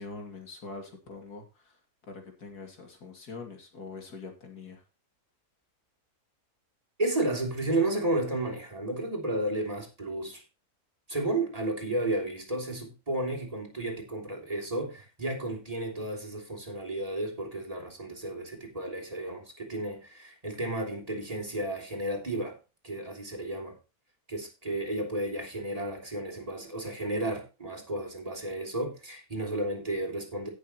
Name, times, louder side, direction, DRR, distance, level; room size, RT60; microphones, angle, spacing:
voice 1, 0.0-1.8 2.1-4.8, left 3 dB, 85° left, 3.2 m, -44 dB
voice 2, 7.0-10.4 11.1-22.6 22.8-23.8 24.3-30.5, right 1 dB, 25° right, 3.4 m, -32 dB
17.0 x 6.7 x 3.0 m
omnidirectional pair, 1.6 m